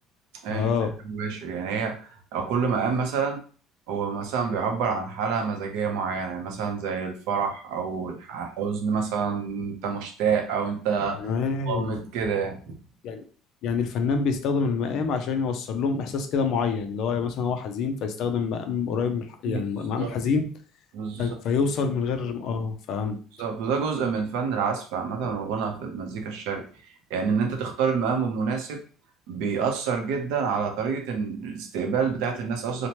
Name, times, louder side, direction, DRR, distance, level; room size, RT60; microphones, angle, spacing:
voice 1, 0.5-0.9 11.1-12.0 13.0-13.2 13.6-20.5 21.2-23.2, left 5 dB, 50° left, 7 dB, 0.4 m, -27 dB
voice 2, 1.0-3.4 3.9-11.3 11.7-12.8 19.5-19.6 20.0-20.2 20.9-21.4 23.4-26.6 27.1-28.8 29.3-32.9, right 6 dB, 85° right, 4 dB, 0.6 m, -28 dB
2.9 x 2.1 x 2.9 m, 0.40 s
cardioid pair, 170°, 0 cm